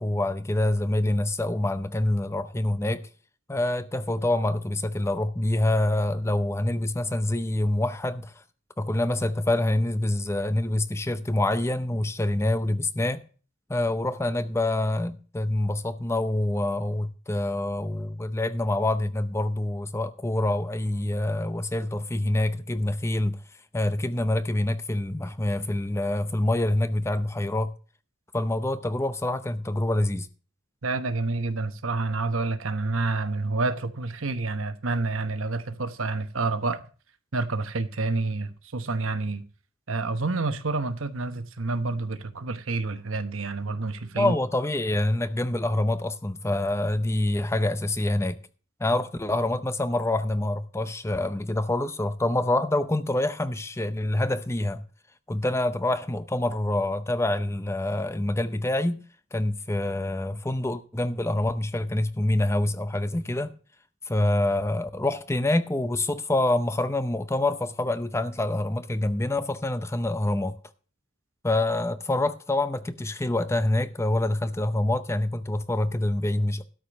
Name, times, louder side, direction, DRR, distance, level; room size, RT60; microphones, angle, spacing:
voice 1, 0.0-3.1 3.5-8.3 8.8-13.2 13.7-23.4 23.7-27.7 28.3-30.3 44.1-48.4 48.8-54.8 55.3-59.0 59.3-63.5 64.1-70.6 71.4-76.6, left 1 dB, 15° left, 0.6 m, -26 dB
voice 2, 30.8-36.8 37.3-39.4 39.9-44.3, right 3 dB, 90° right, 1.0 m, -28 dB
13.0 x 5.0 x 7.1 m
head